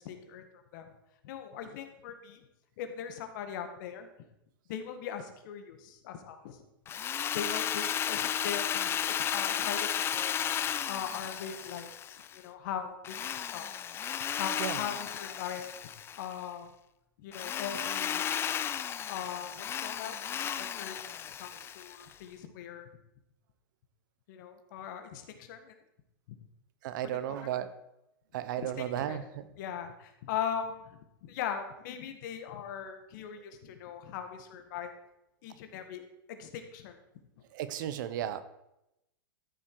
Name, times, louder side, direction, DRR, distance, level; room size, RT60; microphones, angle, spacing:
voice 1, 0.1-0.4 0.7-0.9 1.2-2.4 2.8-4.1 4.7-6.6 7.3-10.4 10.9-13.7 14.4-15.7 16.2-16.7 17.2-18.5 19.1-21.0 21.4-22.9 24.3-25.7 26.3-26.4 27.3-27.5 28.6-29.2 29.6-34.9 35.4-36.0 36.3-37.0, left 8 dB, 55° left, 7 dB, 1.8 m, -40 dB
Drill, 6.9-12.4 13.0-16.3 17.3-22.1, left 9 dB, 20° left, 0.4 m, -34 dB
voice 2, 26.8-27.7 28.3-29.5 37.5-38.4, right 11 dB, 60° right, 13 dB, 1.0 m, -34 dB
13.0 x 7.4 x 4.8 m, 0.86 s
hypercardioid pair, 130°, 12 cm